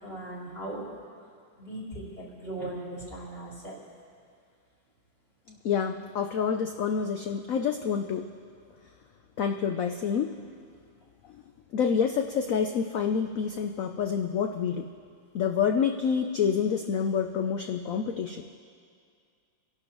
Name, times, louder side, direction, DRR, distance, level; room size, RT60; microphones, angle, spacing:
voice 1, 0.0-1.0 1.6-3.8, right 1 dB, 30° left, -7 dB, 3.5 m, -38 dB
voice 2, 5.5-8.3 9.4-10.3 11.7-14.9 15.3-18.6, left 7 dB, 90° left, 5 dB, 0.7 m, -28 dB
27.0 x 11.5 x 3.0 m, 2.2 s
omnidirectional pair, 2.1 m